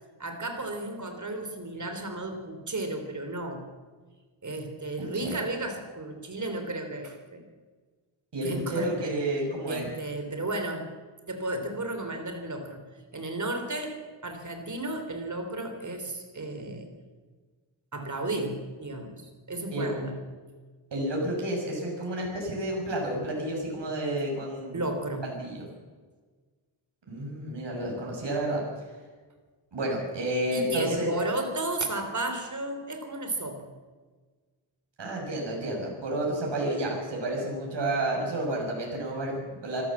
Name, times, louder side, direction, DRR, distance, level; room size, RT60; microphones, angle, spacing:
voice 1, 0.2-3.7 4.4-7.4 8.4-9.1 9.7-10.9 11.3-12.8 13.1-16.9 17.9-19.2 19.5-20.2 23.8-23.9 24.7-25.3 30.5-33.7, right 2 dB, 35° right, 6 dB, 3.5 m, -33 dB
voice 2, 5.0-5.4 8.3-9.9 19.7-19.9 20.9-24.8 25.2-25.7 27.1-28.9 29.7-31.1 35.0-39.8, right 1 dB, 60° right, -1 dB, 6.1 m, -31 dB
25.0 x 14.0 x 7.4 m, 1.4 s
wide cardioid pair, 165°, 48 cm